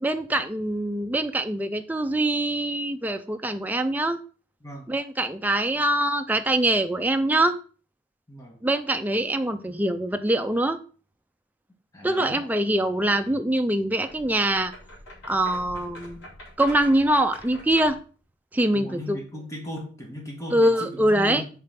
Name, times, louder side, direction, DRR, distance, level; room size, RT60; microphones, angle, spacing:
voice 1, 0.0-4.2 4.9-7.6 8.6-10.8 12.0-14.7 15.2-16.3 16.6-18.0 18.5-19.2 20.5-21.4, right 1 dB, 10° right, 7 dB, 0.5 m, -24 dB
voice 2, 11.9-12.4 18.7-21.5, equal, 15° left, 0 dB, 1.8 m, -37 dB
sound 1, 14.0-18.1, left 1 dB, 80° left, 2.9 m, -44 dB
5.4 x 4.6 x 5.7 m, 0.38 s
head